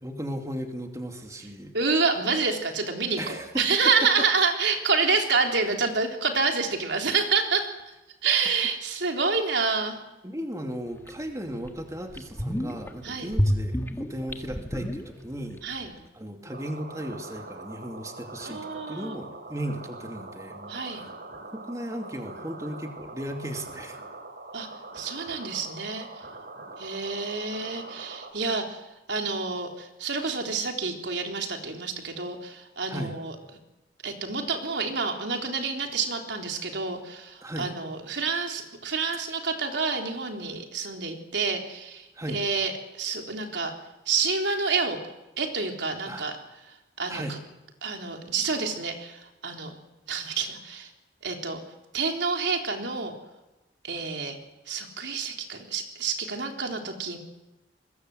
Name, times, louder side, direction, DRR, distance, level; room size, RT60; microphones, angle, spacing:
voice 1, 0.0-1.7 3.2-3.6 4.0-4.3 10.2-15.8 16.1-20.8 21.5-24.0 32.9-33.1 37.4-37.7 42.1-42.4 46.1-46.3 47.1-47.3, equal, 20° right, 3 dB, 2.6 m, -36 dB
voice 2, 1.7-7.7 8.2-10.0 13.0-13.3 15.6-15.9 18.5-19.2 20.7-21.0 24.5-24.7 24.9-26.1 26.8-28.8 29.1-33.3 34.0-43.7 44.1-45.0 45.4-46.3 47.0-47.4 47.8-49.7 50.1-50.9 51.2-51.6 51.9-53.1 53.8-54.4 54.7-57.2, right 4 dB, 80° right, 3 dB, 3.7 m, -28 dB
sound 1, 11.1-11.2 11.6-11.7 12.1-12.9 13.3-15.6 15.8-15.9, equal, 15° left, 1.7 m, -28 dB
sound 2, 16.5-28.3, right 2 dB, 55° right, 4.5 m, -43 dB
26.0 x 22.0 x 7.9 m, 1.0 s
head